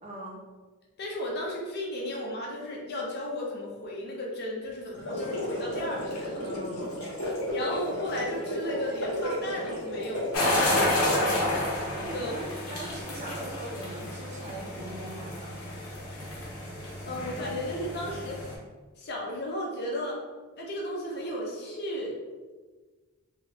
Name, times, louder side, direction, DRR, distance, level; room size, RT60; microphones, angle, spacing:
voice 1, 0.0-0.4 6.4-7.1 12.0-15.5, right 1 dB, 30° right, -2 dB, 0.6 m, -41 dB
voice 2, 1.0-6.4 7.5-11.0 12.0-12.4 17.0-18.5 19.0-20.2 20.6-22.2, left 1 dB, 45° left, -3 dB, 0.6 m, -34 dB
sound 1, 4.9-11.7, equal, 90° left, 1.2 m, -33 dB
sound 2, 10.3-18.5, left 1 dB, 70° left, 0.9 m, -31 dB
2.8 x 2.7 x 3.2 m, 1.3 s
head